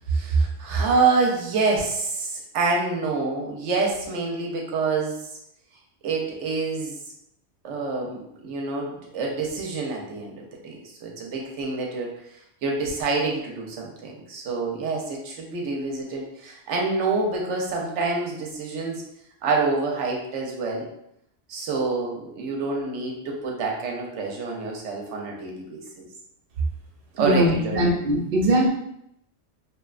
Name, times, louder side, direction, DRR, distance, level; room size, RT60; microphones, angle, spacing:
voice 1, 0.1-5.2 6.0-7.0 7.6-10.4 10.6-12.1 12.6-19.0 19.4-20.9 21.5-26.1 27.1-28.0, right 3 dB, 90° right, -1 dB, 0.9 m, -27 dB
voice 2, 27.2-28.7, right 1 dB, 60° right, -2 dB, 0.8 m, -21 dB
2.8 x 2.2 x 2.3 m, 0.77 s
omnidirectional pair, 1.2 m